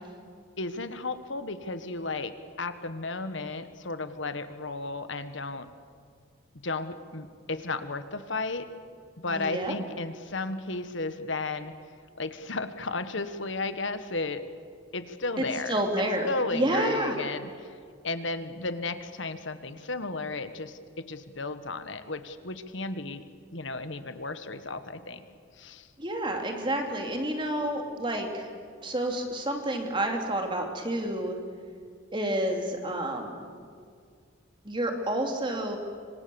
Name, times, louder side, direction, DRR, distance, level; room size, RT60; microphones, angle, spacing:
voice 1, 0.6-5.7 6.6-8.7 9.2-11.7 12.2-14.4 14.9-17.7 18.0-23.2 23.5-25.2 25.6-25.9, left 3 dB, 70° left, 10 dB, 1.5 m, -34 dB
voice 2, 9.2-9.7 15.4-17.2 26.0-28.5 28.8-31.4 32.1-33.5 34.6-35.8, right 1 dB, 25° right, 3 dB, 2.8 m, -29 dB
26.5 x 25.5 x 7.1 m, 2.1 s
head